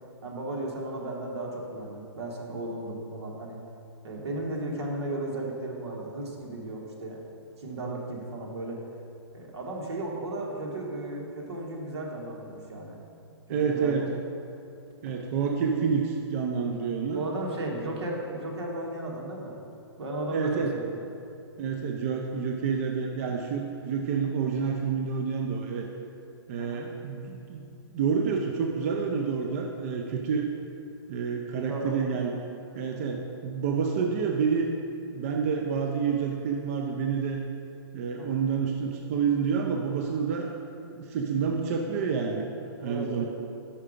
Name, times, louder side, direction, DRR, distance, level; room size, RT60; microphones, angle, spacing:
voice 1, 0.2-3.6 4.0-7.3 7.6-8.8 9.3-13.0 13.2-14.2 15.1-15.2 17.1-19.6 20.0-21.0 26.6-26.8 31.5-32.1 32.8-33.0 38.2-38.4 42.8-43.2, right 1 dB, 75° right, -1 dB, 1.4 m, -35 dB
voice 2, 13.5-14.1 15.0-17.2 20.3-20.7 21.6-25.9 26.5-30.5 31.1-32.3 32.8-34.7 35.1-37.4 37.9-40.5 40.8-42.5 42.8-43.2, right 6 dB, 35° right, 2 dB, 0.4 m, -28 dB
5.7 x 4.8 x 5.0 m, 2.6 s
hypercardioid pair, 155°, 14 cm